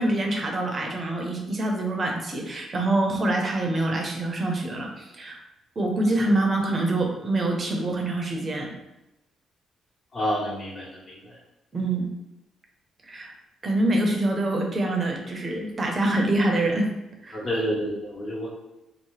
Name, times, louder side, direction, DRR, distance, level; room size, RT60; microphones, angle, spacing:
voice 1, 0.0-5.4 5.8-8.7 11.7-12.1 13.0-13.3 13.6-16.9 17.2-17.4, right 2 dB, 35° right, 2 dB, 0.6 m, -25 dB
voice 2, 10.1-11.3 17.3-18.5, equal, 50° left, -7 dB, 1.2 m, -29 dB
2.9 x 2.0 x 3.1 m, 0.92 s
cardioid pair, 90°, 0 cm